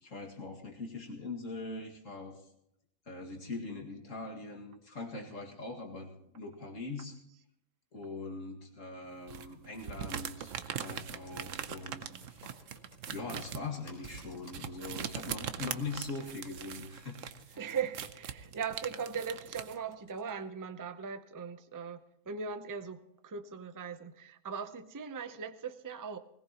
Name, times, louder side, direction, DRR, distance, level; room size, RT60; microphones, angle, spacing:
voice 1, 0.0-2.3 3.1-7.2 7.9-12.4 13.1-17.2 17.4-17.6, left 3 dB, 65° left, 0 dB, 2.4 m, -42 dB
sound 1, 9.3-19.7, right 9 dB, 65° right, 1.1 m, -41 dB
Computer keyboard, 10.1-20.3, left 1 dB, 45° left, 4.3 m, -59 dB
voice 2, 17.6-26.2, right 6 dB, 25° right, 10 dB, 0.5 m, -39 dB
20.0 x 17.5 x 3.0 m, 0.78 s
omnidirectional pair, 1.5 m